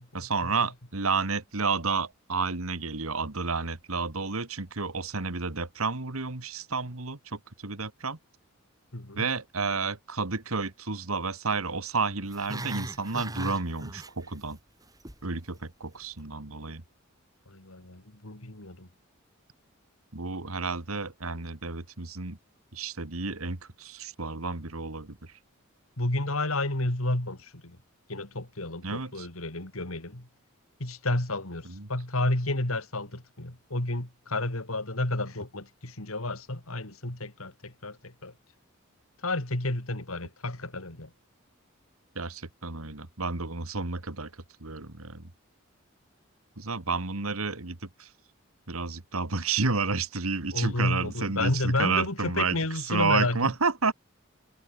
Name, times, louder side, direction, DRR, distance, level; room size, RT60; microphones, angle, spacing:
voice 1, 0.1-8.2 9.2-14.6 15.2-16.8 20.1-22.4 22.7-25.3 28.8-29.3 31.6-31.9 42.2-44.3 44.6-45.3 46.6-48.1 48.7-53.9, right 4 dB, 80° right, 2.2 m, -31 dB
voice 2, 8.9-9.3 17.5-18.9 26.0-27.8 28.1-30.3 30.8-38.3 39.2-41.1 50.5-53.4, left 2 dB, 80° left, 3.5 m, -31 dB
Growling, 12.2-14.6 14.8-15.2 15.6-15.7, right 1 dB, 15° right, 5.2 m, -38 dB
head